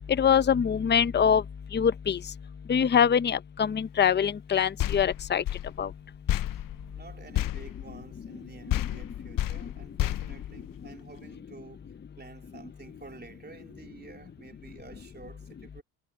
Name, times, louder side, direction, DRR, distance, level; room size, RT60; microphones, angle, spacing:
voice 1, 0.2-1.4 1.7-2.2 2.7-5.4 5.8-5.9, left 7 dB, 25° left, 0.9 m, -23 dB
sound 1, 4.8-8.4 8.7-11.2, left 13 dB, 50° left, 1.1 m, -32 dB
voice 2, 6.9-11.9 12.2-15.8, right 4 dB, 25° right, 3.9 m, -50 dB
supercardioid pair, 80°, 42 cm